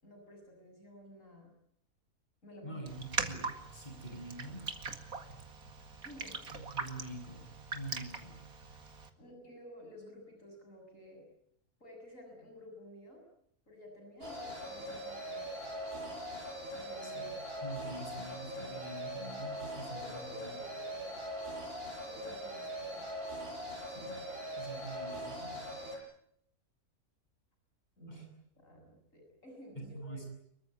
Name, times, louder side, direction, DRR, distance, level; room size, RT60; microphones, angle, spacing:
voice 1, 0.0-1.5 2.4-2.8 6.0-6.4 9.2-11.3 11.8-13.2 13.7-15.6 16.7-17.3 19.8-21.2 22.0-23.1 28.0-30.3, equal, 55° left, 3 dB, 7.3 m, -53 dB
voice 2, 2.6-4.7 6.5-8.4 17.0-17.3 17.6-20.6 23.9-24.2 24.6-25.7 28.1-28.2 29.8-30.3, right 1 dB, 30° left, 3 dB, 8.1 m, -46 dB
Raindrop, 2.9-9.1, right 4 dB, 70° right, 2.6 m, -41 dB
weird loop, 14.2-26.0, equal, 40° right, 7.9 m, -41 dB
25.5 x 23.0 x 8.5 m, 0.73 s
omnidirectional pair, 1.6 m